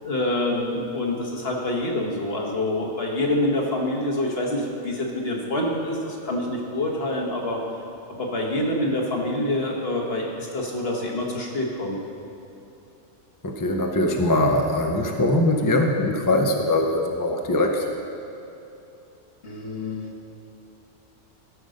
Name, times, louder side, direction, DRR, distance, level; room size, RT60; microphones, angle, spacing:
voice 1, 0.0-7.6 8.1-12.0 19.4-20.1, left 1 dB, 55° left, -1 dB, 1.6 m, -26 dB
voice 2, 13.4-17.9, left 1 dB, 20° left, 2 dB, 0.6 m, -22 dB
13.5 x 5.4 x 6.4 m, 2.8 s
omnidirectional pair, 1.2 m